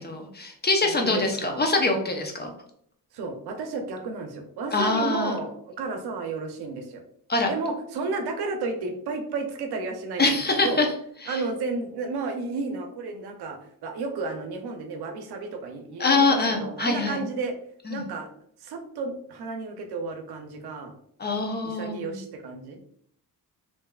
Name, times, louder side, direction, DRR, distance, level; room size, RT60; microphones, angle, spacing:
voice 1, 0.0-2.5 4.7-5.4 7.3-7.5 10.2-10.9 11.2-11.4 16.0-17.2 17.9-18.0 21.2-22.2, left 3 dB, 25° left, 3 dB, 0.7 m, -24 dB
voice 2, 0.8-1.7 3.1-7.0 7.5-10.8 11.3-17.6 17.9-18.3 18.6-20.9 21.6-22.8, right 3 dB, 70° right, 5 dB, 0.7 m, -32 dB
3.3 x 2.7 x 2.3 m, 0.67 s
supercardioid pair, 65°, 40 cm